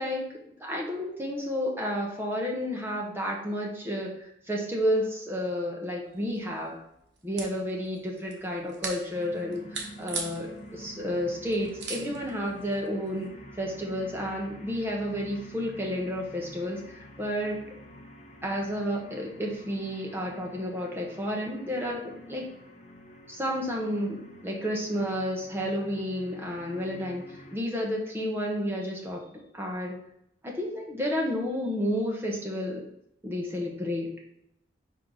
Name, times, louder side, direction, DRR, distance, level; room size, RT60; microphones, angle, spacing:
voice 1, 0.0-6.8 7.2-13.3 13.6-17.6 18.4-22.4 23.3-29.2 29.5-30.0 30.4-32.9 33.2-34.1, equal, 15° right, -1 dB, 1.0 m, -31 dB
sound 1, 6.1-13.3, right 4 dB, 75° right, 1.2 m, -42 dB
sound 2, 9.1-27.6, equal, 40° left, 0.7 m, -48 dB
5.2 x 4.6 x 4.0 m, 0.76 s
head